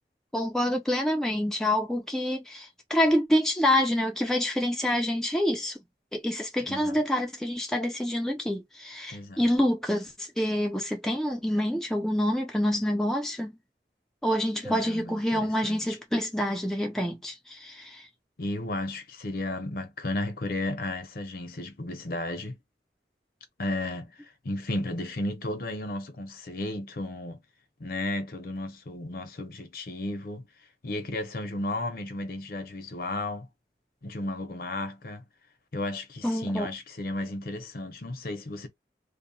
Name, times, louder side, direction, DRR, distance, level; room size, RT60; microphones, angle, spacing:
voice 1, 0.3-5.8 6.1-13.5 14.2-18.0 36.2-36.7, left 1 dB, 5° left, 0.3 m, -27 dB
voice 2, 6.6-7.0 9.1-9.4 14.6-16.0 18.4-22.6 23.6-27.4 27.8-30.4 30.8-33.5 34.0-35.2 35.7-38.7, left 1 dB, 55° left, 0.6 m, -34 dB
2.7 x 2.1 x 2.6 m
head